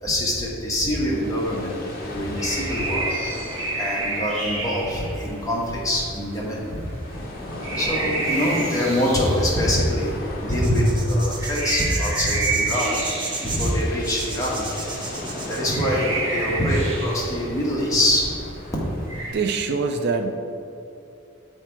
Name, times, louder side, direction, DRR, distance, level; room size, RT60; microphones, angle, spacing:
voice 1, 0.0-1.8 2.0-3.0 3.8-6.8 7.8-10.1 10.4-13.0 13.4-14.6 15.5-18.4, left 1 dB, 15° left, -5 dB, 1.3 m, -24 dB
sound 1, 1.1-19.5, left 1 dB, 45° left, 0.9 m, -37 dB
sound 2, 1.1-19.3, right 2 dB, 75° right, 1.3 m, -31 dB
sound 3, 10.5-15.7, right 3 dB, 20° right, 0.7 m, -32 dB
voice 2, 19.3-20.3, right 4 dB, 55° right, 5 dB, 0.4 m, -24 dB
7.4 x 4.4 x 4.5 m, 2.7 s
head